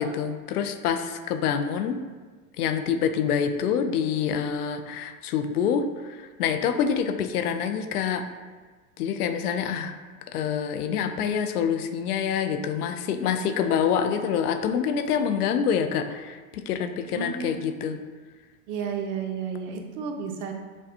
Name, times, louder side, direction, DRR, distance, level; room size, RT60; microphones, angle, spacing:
voice 1, 0.0-2.0 2.6-8.2 9.0-9.9 10.3-18.0, left 7 dB, 90° left, 8 dB, 0.5 m, -26 dB
voice 2, 17.1-17.6 18.7-20.5, right 6 dB, 55° right, 3 dB, 0.7 m, -32 dB
6.0 x 2.2 x 2.8 m, 1.4 s
hypercardioid pair, 115°, 44 cm